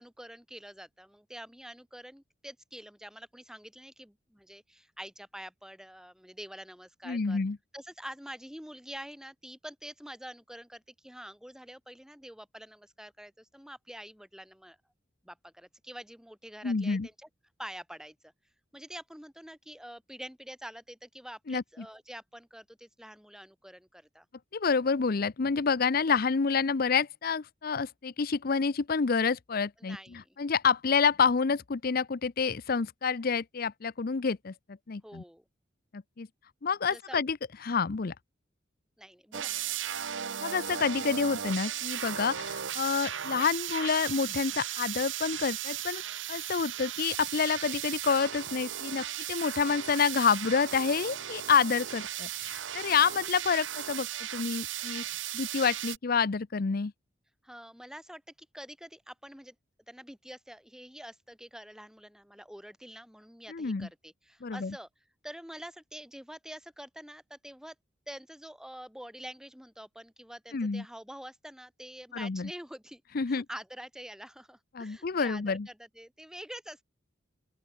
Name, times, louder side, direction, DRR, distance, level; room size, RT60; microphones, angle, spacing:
voice 1, 0.0-7.4 7.7-14.8 15.2-17.3 17.6-18.3 18.7-24.3 29.8-30.4 35.0-35.4 36.9-37.2 39.0-39.6 57.4-59.6 59.9-64.9 65.2-67.7 68.1-73.0 73.3-76.8, equal, 5° right, 2.7 m, -46 dB
voice 2, 7.1-7.6 16.6-17.1 21.5-21.6 24.5-34.5 34.9-35.2 35.9-36.3 36.6-37.4 37.6-38.1 40.4-46.0 46.3-56.9 63.5-63.9 64.4-64.7 70.5-70.8 72.1-72.5 73.1-73.4 74.7-75.7, left 5 dB, 50° left, 0.6 m, -28 dB
sound 1, 39.3-56.0, right 11 dB, 75° right, 1.1 m, -36 dB
open air
head